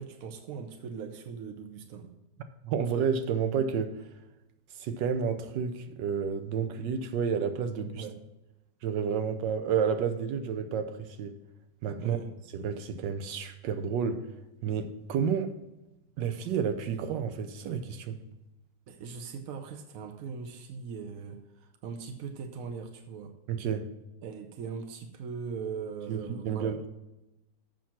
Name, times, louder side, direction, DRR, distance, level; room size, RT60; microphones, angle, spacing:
voice 1, 0.0-2.1 7.9-8.2 12.0-12.3 18.9-23.3 24.2-26.8, right 6 dB, 60° right, 1.0 m, -40 dB
voice 2, 2.6-4.1 4.7-8.0 8.8-11.4 11.8-12.2 12.5-14.3 14.6-15.5 16.2-18.2 23.5-23.9 26.1-26.9, right 6 dB, 90° right, 1.4 m, -30 dB
7.1 x 6.0 x 5.8 m
omnidirectional pair, 1.9 m